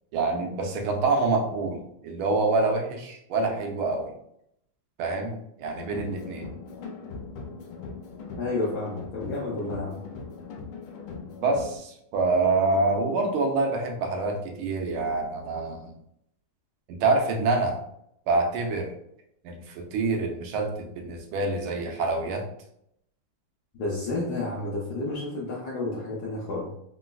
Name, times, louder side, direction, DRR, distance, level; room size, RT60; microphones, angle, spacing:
voice 1, 0.1-4.1 5.0-6.5 11.4-15.9 16.9-17.8 18.3-18.9 19.4-22.4, right 3 dB, 85° right, 2 dB, 1.5 m, -26 dB
sound 1, 5.7-11.8, left 4 dB, 85° left, 1.5 m, -40 dB
voice 2, 8.3-10.0 23.7-26.7, left 2 dB, 70° left, -4 dB, 0.9 m, -31 dB
3.9 x 2.3 x 2.2 m, 0.74 s
omnidirectional pair, 2.3 m